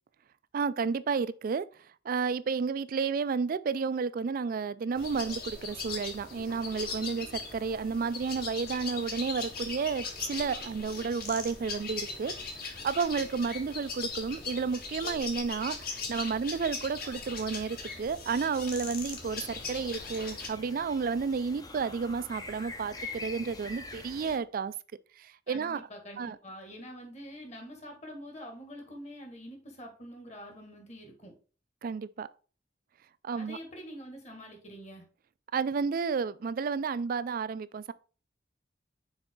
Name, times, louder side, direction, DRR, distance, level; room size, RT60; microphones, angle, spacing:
voice 1, 0.5-1.7 2.1-12.3 12.8-24.7 25.2-25.8 26.2-26.4 31.8-32.3 33.2-33.6 35.5-37.9, right 5 dB, 50° right, 0.3 m, -31 dB
sound 1, 5.0-20.5, left 4 dB, 55° left, 1.6 m, -39 dB
sound 2, 19.2-24.4, left 3 dB, 20° left, 0.6 m, -44 dB
voice 2, 25.5-31.3 33.4-35.0, equal, 40° left, 1.7 m, -46 dB
6.0 x 4.4 x 3.7 m
head